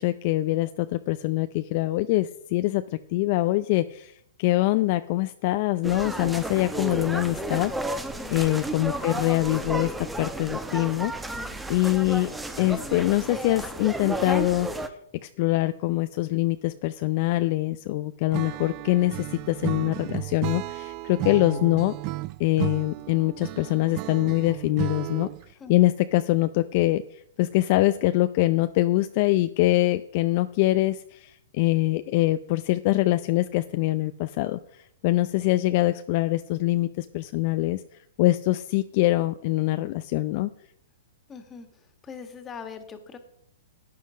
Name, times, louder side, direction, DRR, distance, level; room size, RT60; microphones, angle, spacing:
voice 1, 0.0-8.0 8.3-9.9 10.2-11.1 11.7-12.3 12.6-14.7 15.2-21.9 22.4-25.3 25.7-37.8 38.2-40.5, left 17 dB, 45° left, 11 dB, 0.5 m, -24 dB
sound 1, 5.8-14.9, right 2 dB, 5° right, 1.1 m, -32 dB
voice 2, 11.3-11.6 25.6-25.7 41.3-43.2, left 6 dB, 20° left, 7 dB, 1.9 m, -42 dB
Acoustic guitar / Strum, 18.3-25.5, right 19 dB, 40° right, 0.4 m, -34 dB
11.5 x 9.6 x 5.1 m, 0.71 s
hypercardioid pair, 120°, 0 cm